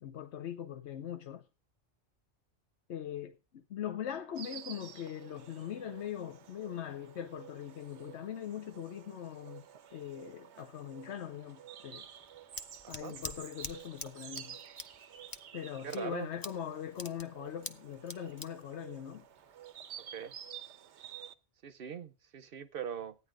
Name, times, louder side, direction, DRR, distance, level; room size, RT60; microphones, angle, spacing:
voice 1, 0.0-1.4 2.9-9.7 9.9-12.1 12.9-14.6 15.5-19.3, left 9 dB, 80° left, 1.1 m, -41 dB
Insect, 4.3-21.3, right 9 dB, 85° right, 1.1 m, -51 dB
Scissors, 12.0-19.8, left 3 dB, 25° left, 0.6 m, -47 dB
voice 2, 12.8-13.1 15.8-16.3 20.1-20.3 21.6-23.2, right 8 dB, 60° right, 0.8 m, -41 dB
13.5 x 9.5 x 3.7 m
omnidirectional pair, 1.1 m